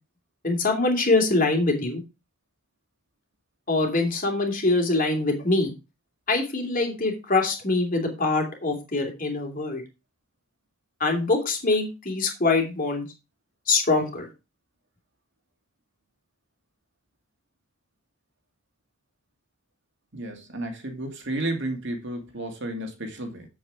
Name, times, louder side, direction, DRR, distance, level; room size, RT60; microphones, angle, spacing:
voice 1, 0.4-2.0 3.7-5.7 6.3-9.8 11.0-13.0 13.7-14.3, left 3 dB, 40° left, 2.9 m, -24 dB
voice 2, 20.1-23.5, right 1 dB, 55° right, 2.4 m, -32 dB
8.5 x 7.8 x 4.9 m
head